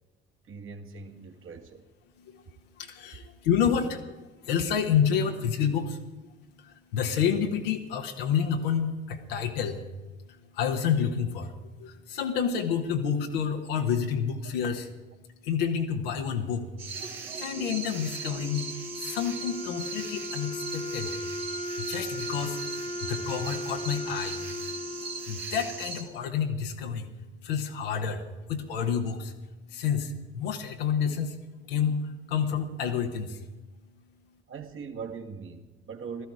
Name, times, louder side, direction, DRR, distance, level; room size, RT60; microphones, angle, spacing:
voice 1, 0.4-1.9 34.5-36.3, right 5 dB, 45° right, 4 dB, 1.9 m, -41 dB
voice 2, 2.8-6.3 6.6-9.8 10.5-14.9 15.4-16.7 17.3-21.2 21.8-24.4 25.0-27.1 27.4-29.3 29.7-31.4 31.7-33.5, left 7 dB, 75° left, 3 dB, 1.4 m, -29 dB
sound 1, 16.8-26.0, right 5 dB, 85° right, 1.6 m, -39 dB
Wind instrument woodwind instrument, 17.5-26.6, left 2 dB, 20° left, 1.2 m, -38 dB
16.0 x 13.5 x 4.9 m, 1.2 s
figure-of-eight pair, 50°, 29 cm